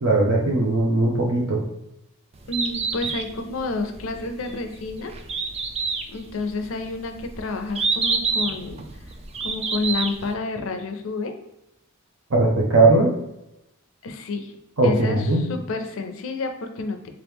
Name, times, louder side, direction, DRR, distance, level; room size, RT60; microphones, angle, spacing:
voice 1, 0.0-1.6 12.3-13.1 14.8-15.4, right 2 dB, 70° right, -2 dB, 0.6 m, -19 dB
Bird, 2.3-10.3, right 4 dB, 30° right, 0.3 m, -28 dB
voice 2, 2.5-5.1 6.1-8.8 9.4-11.3 14.0-14.5 14.8-17.1, left 3 dB, 60° left, 6 dB, 0.5 m, -29 dB
3.5 x 3.0 x 3.5 m, 0.86 s
head